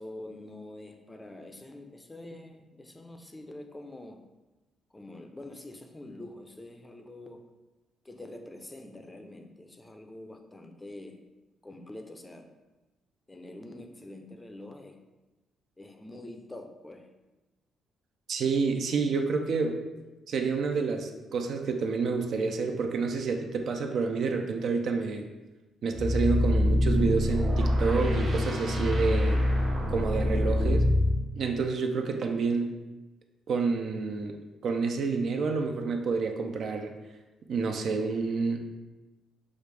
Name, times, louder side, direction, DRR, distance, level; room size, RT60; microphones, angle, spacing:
voice 1, 0.0-4.3 4.9-7.5 8.0-11.2 11.6-12.5 13.3-15.0 15.8-17.1, left 1 dB, 15° left, 5 dB, 0.5 m, -45 dB
voice 2, 18.3-19.8 20.3-25.2 25.8-29.4 29.9-30.9 31.4-32.7 33.5-34.4 34.6-36.9 37.5-38.6, right 4 dB, 65° right, 4 dB, 0.5 m, -29 dB
sound 1, 25.9-31.2, left 1 dB, 50° right, 1.3 m, -25 dB
6.4 x 2.5 x 3.3 m, 1.1 s
cardioid pair, 90°, 0 cm